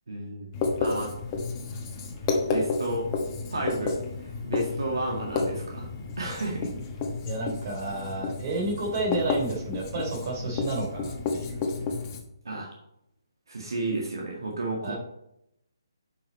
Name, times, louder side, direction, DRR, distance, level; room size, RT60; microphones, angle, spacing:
voice 1, 0.1-1.1 2.5-3.1 3.5-5.9 6.2-6.7 12.5-12.7 13.5-14.9, right 2 dB, 65° right, -1 dB, 1.8 m, -32 dB
Writing, 0.5-12.2, left 4 dB, 25° left, 1.2 m, -31 dB
voice 2, 7.2-11.8 14.8-14.9, right 2 dB, 35° right, -2 dB, 3.3 m, -31 dB
7.5 x 5.9 x 4.2 m, 0.81 s
figure-of-eight pair, 145°, 2 cm